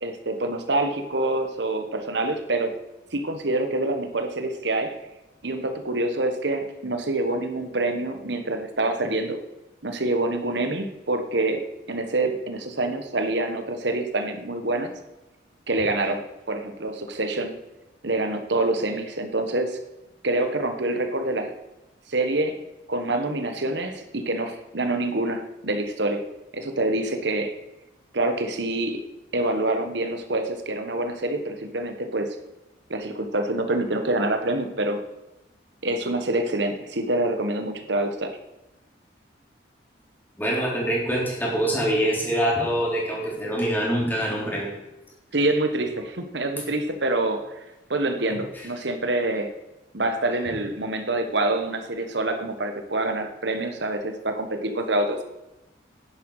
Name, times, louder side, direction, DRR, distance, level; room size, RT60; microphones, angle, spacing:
voice 1, 0.0-2.8 3.1-5.0 5.4-9.4 9.8-11.6 11.9-14.9 15.7-17.5 18.0-19.8 20.2-21.5 22.1-22.6 22.9-26.2 26.5-27.5 28.1-29.0 29.3-32.4 32.9-35.0 35.8-38.4 45.3-47.6 47.9-49.5 49.9-55.2, right 2 dB, 65° right, 6 dB, 1.4 m, -26 dB
voice 2, 40.4-44.7, right 1 dB, 10° left, -3 dB, 3.7 m, -24 dB
11.0 x 10.5 x 4.9 m, 0.99 s
head